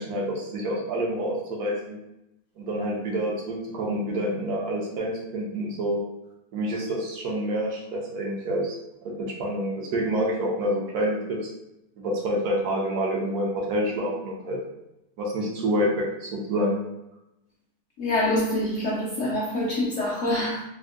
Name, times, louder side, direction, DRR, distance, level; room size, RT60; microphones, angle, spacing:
voice 1, 0.0-2.0 2.6-6.0 6.5-8.8 9.0-11.4 12.0-14.6 15.2-16.8, equal, 70° right, -3 dB, 1.1 m, -27 dB
voice 2, 18.0-20.6, left 1 dB, 65° left, -5 dB, 0.8 m, -25 dB
3.5 x 2.1 x 2.4 m, 0.89 s
omnidirectional pair, 1.8 m